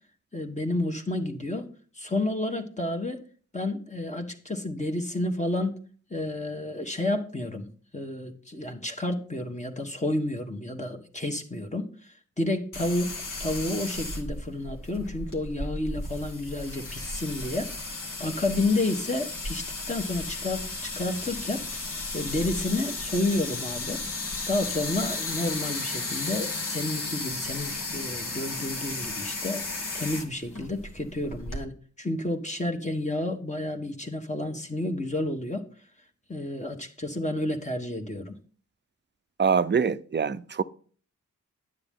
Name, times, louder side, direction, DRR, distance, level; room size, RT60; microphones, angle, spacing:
voice 1, 0.3-3.2 3.5-5.8 6.1-13.1 13.4-21.7 22.1-24.0 24.5-29.6 29.9-35.6 36.3-38.4, left 2 dB, 20° left, 1.4 m, -30 dB
sound 1, 12.7-31.6, left 3 dB, 80° left, 1.8 m, -34 dB
voice 2, 39.4-40.6, right 6 dB, 35° right, 0.6 m, -24 dB
9.7 x 7.5 x 3.6 m
cardioid pair, 45°, 31 cm